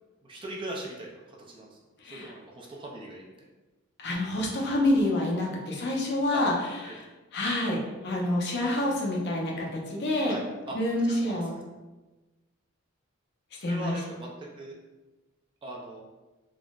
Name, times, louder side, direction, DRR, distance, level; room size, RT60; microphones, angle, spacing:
voice 1, 0.2-1.8 2.0-3.2 4.4-4.5 6.3-6.4 6.8-7.0 10.2-10.8 11.1-11.4 13.6-14.8 15.6-16.0, right 2 dB, 25° right, -2 dB, 0.4 m, -40 dB
voice 2, 2.0-2.3 4.0-7.0 7.3-10.3 10.7-11.5 13.6-14.0, left 1 dB, 55° left, -2 dB, 0.6 m, -27 dB
3.6 x 2.0 x 2.3 m, 1.2 s
head